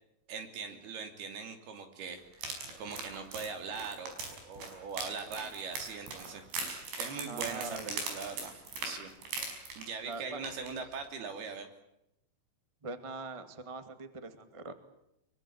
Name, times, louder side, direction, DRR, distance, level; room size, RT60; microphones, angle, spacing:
voice 1, 0.3-9.1 9.8-11.7, right 5 dB, 65° right, 7 dB, 4.8 m, -41 dB
sound 1, 2.3-10.1 10.4-10.7 11.0-11.1, right 3 dB, 85° right, 7.5 m, -40 dB
voice 2, 7.3-8.1 10.0-10.4 12.8-14.7, right 3 dB, 45° right, 9 dB, 0.4 m, -42 dB
24.0 x 23.0 x 8.7 m, 0.82 s
omnidirectional pair, 5.0 m